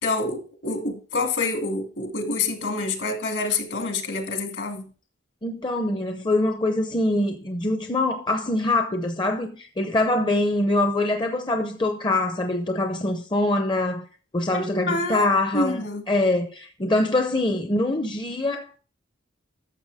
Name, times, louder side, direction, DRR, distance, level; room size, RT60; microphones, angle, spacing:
voice 1, 0.0-4.9 14.5-15.3 15.5-16.0, left 3 dB, 70° left, 2.4 m, -27 dB
voice 2, 5.4-14.0 14.3-18.8, left 2 dB, 25° left, 0.6 m, -24 dB
12.5 x 7.0 x 3.5 m
head